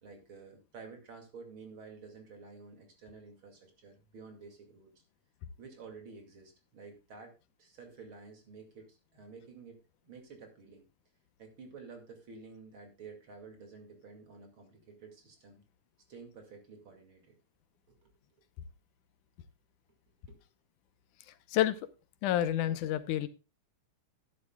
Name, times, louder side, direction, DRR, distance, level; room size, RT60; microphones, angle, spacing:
voice 1, 0.0-4.9 5.6-10.9 11.4-15.6 16.1-17.4 17.9-18.0 20.3-20.4, right 4 dB, 45° right, 5 dB, 2.9 m, -51 dB
voice 2, 21.5-21.8 22.2-23.3, left 12 dB, 90° left, 13 dB, 2.4 m, -29 dB
12.0 x 11.0 x 2.3 m, 0.28 s
omnidirectional pair, 3.5 m